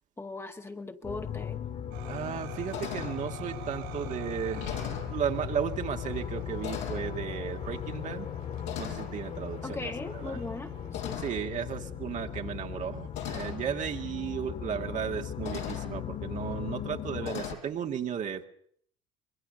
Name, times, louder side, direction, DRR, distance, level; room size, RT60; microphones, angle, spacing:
voice 1, 0.2-1.6 9.6-11.2, left 2 dB, 15° left, 5 dB, 2.0 m, -39 dB
sound 1, 1.0-17.4, left 9 dB, 45° left, 3.4 m, -38 dB
sound 2, 1.6-1.7 2.2-2.4 2.7-3.2 4.0-4.1 4.5-5.1 6.1-6.3 6.6-7.1 8.0-8.3 8.6-9.1 10.9-11.5 12.6-12.7 13.1-13.6 14.8-14.9 15.4-15.9 17.2-17.6, left 10 dB, 75° left, 5.0 m, -38 dB
sound 3, 1.9-11.1, right 7 dB, 80° right, 6.9 m, -49 dB
voice 2, 2.1-8.3 8.8-10.4 11.2-18.5, right 8 dB, 45° right, 4 dB, 2.3 m, -35 dB
25.5 x 22.0 x 6.7 m, 0.64 s
supercardioid pair, 85°, 17 cm